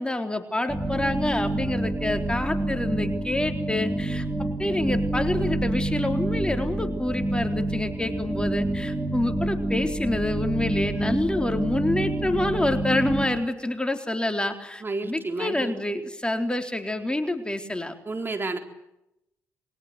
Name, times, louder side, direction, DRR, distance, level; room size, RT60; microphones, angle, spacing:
voice 1, 0.0-17.9, left 1 dB, 15° left, 6 dB, 3.9 m, -27 dB
sound 1, 0.7-13.3, right 1 dB, 10° right, 6.3 m, -28 dB
voice 2, 14.8-15.7 18.1-18.6, right 3 dB, 30° right, 5 dB, 3.9 m, -30 dB
28.5 x 23.0 x 8.1 m, 0.87 s
hypercardioid pair, 50°, 7 cm